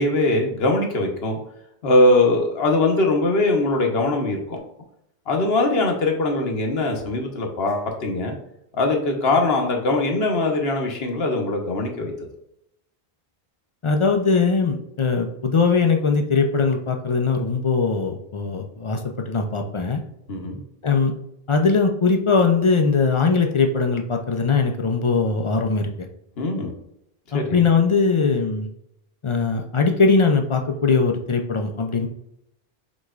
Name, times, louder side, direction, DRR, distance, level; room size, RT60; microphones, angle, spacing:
voice 1, 0.0-1.4 1.8-4.6 5.3-8.4 8.7-12.1 20.3-20.6 26.4-26.7 27.3-27.7, left 2 dB, 75° left, 2 dB, 1.2 m, -21 dB
voice 2, 13.8-19.0 19.3-20.0 20.8-21.1 21.5-25.9 27.3-28.7 29.2-32.1, left 4 dB, 45° left, 4 dB, 0.4 m, -20 dB
6.2 x 3.0 x 2.4 m, 0.79 s
omnidirectional pair, 1.0 m